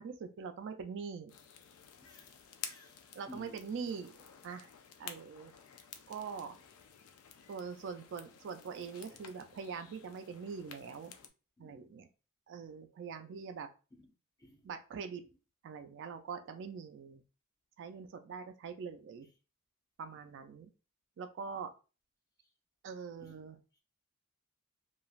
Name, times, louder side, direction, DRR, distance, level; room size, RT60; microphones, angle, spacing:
voice 1, 0.0-1.3 3.1-4.2 4.4-4.7 5.0-5.5 6.1-6.6 7.5-11.1 11.6-12.1 12.5-13.7 14.6-15.2 15.6-17.2 17.8-19.3 20.0-20.7 21.2-21.7 22.8-23.6, right 6 dB, 55° right, 0.3 m, -43 dB
sound 1, 1.3-11.3, left 7 dB, 70° left, 0.4 m, -52 dB
voice 2, 2.0-3.6 11.6-11.9 13.9-14.1 14.4-14.7 23.2-23.4, left 2 dB, 15° left, 0.6 m, -56 dB
3.1 x 2.3 x 2.4 m
head